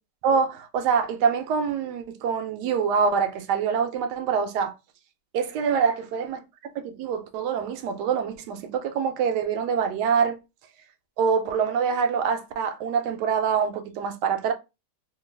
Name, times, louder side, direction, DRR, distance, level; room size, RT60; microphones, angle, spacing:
voice 1, 0.2-4.7 5.3-6.4 6.7-10.4 11.2-14.5, right 6 dB, 85° right, 1.2 m, -25 dB
2.9 x 2.3 x 3.2 m
omnidirectional pair, 1.7 m